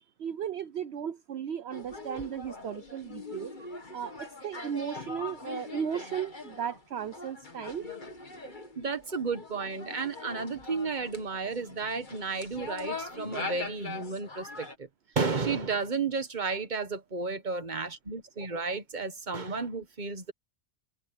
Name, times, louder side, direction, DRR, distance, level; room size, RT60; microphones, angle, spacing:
voice 1, 0.2-3.5 3.9-7.9, right 8 dB, 65° right, 1.1 m, -35 dB
sound 1, 1.7-14.7, left 3 dB, 40° left, 2.5 m, -42 dB
voice 2, 8.8-14.9 15.1-20.3, right 4 dB, 40° right, 1.6 m, -33 dB
open air
omnidirectional pair, 1.2 m